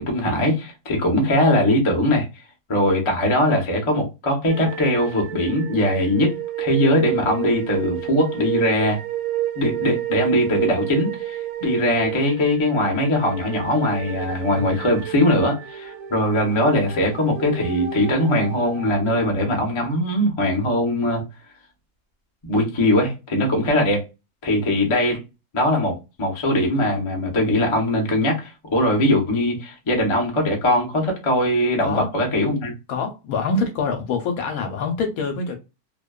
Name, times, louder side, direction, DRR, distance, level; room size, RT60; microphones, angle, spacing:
voice 1, 0.0-2.2 2.7-9.0 9.6-21.2 22.4-24.1 24.4-25.2 25.5-32.7, left 1 dB, 35° left, 0.5 m, -21 dB
sound 1, 4.5-19.6, right 12 dB, 70° right, 1.0 m, -31 dB
voice 2, 32.9-35.6, left 4 dB, 70° left, 1.0 m, -25 dB
2.6 x 2.2 x 2.2 m
omnidirectional pair, 1.7 m